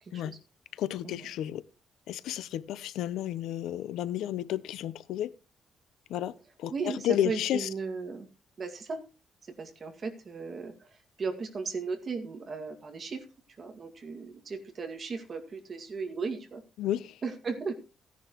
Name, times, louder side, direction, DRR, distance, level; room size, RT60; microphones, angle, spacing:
voice 1, 0.0-0.4 1.0-1.1 6.7-8.3 8.6-9.0 9.4-10.9 11.2-13.2 13.6-16.6 17.2-17.7, right 4 dB, 30° right, 2.1 m, -36 dB
voice 2, 0.7-1.6 2.1-5.3 6.1-7.7 16.8-17.2, left 12 dB, 85° left, 0.7 m, -32 dB
16.0 x 10.5 x 3.0 m
cardioid pair, 170°, 0 cm